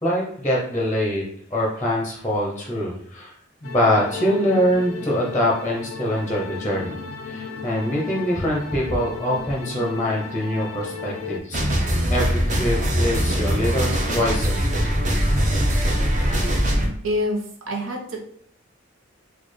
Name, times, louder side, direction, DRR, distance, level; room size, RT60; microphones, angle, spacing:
voice 1, 0.0-3.3 3.6-7.0 7.2-11.6 12.1-14.6, equal, 15° left, -2 dB, 0.6 m, -24 dB
sound 1, 3.6-11.4, left 5 dB, 85° left, 0.5 m, -35 dB
sound 2, 11.5-16.9, equal, 40° right, 0.7 m, -21 dB
voice 2, 17.0-18.2, left 1 dB, 75° right, 0 dB, 0.8 m, -26 dB
4.1 x 2.3 x 3.1 m, 0.68 s
head